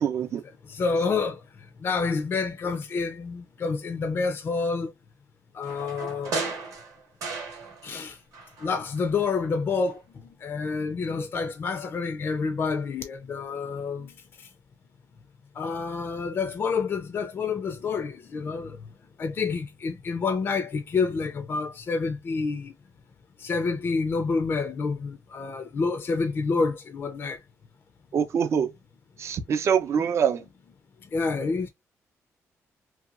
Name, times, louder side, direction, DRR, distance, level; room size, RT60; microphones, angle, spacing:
voice 1, 0.0-0.4 28.1-28.7 29.2-30.4, right 7 dB, 55° right, 0.5 m, -24 dB
voice 2, 0.6-4.9 5.5-6.4 7.8-8.2 8.6-14.5 15.5-18.8 19.2-22.7 23.4-27.4 31.0-31.7, left 4 dB, 45° left, 0.4 m, -28 dB
sound 1, 5.6-8.1 8.3-9.4 9.7-9.8, right 4 dB, 90° right, 0.9 m, -35 dB
2.8 x 2.2 x 2.4 m
cardioid pair, 115°, 6 cm